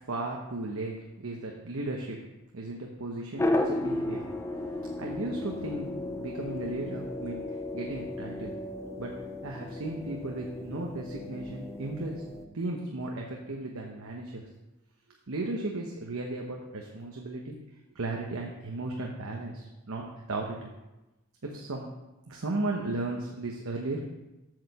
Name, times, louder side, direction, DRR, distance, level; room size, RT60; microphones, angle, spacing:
voice 1, 0.1-2.2 2.5-4.2 5.0-7.4 7.7-8.5 9.0-9.1 9.4-12.2 12.5-14.4 15.3-17.6 17.9-20.7 21.4-21.9 22.3-24.0, right 2 dB, 65° right, 0 dB, 1.0 m, -35 dB
sound 1, 3.4-12.5, left 1 dB, 15° left, 0.5 m, -34 dB
7.8 x 5.0 x 6.9 m, 1.0 s
head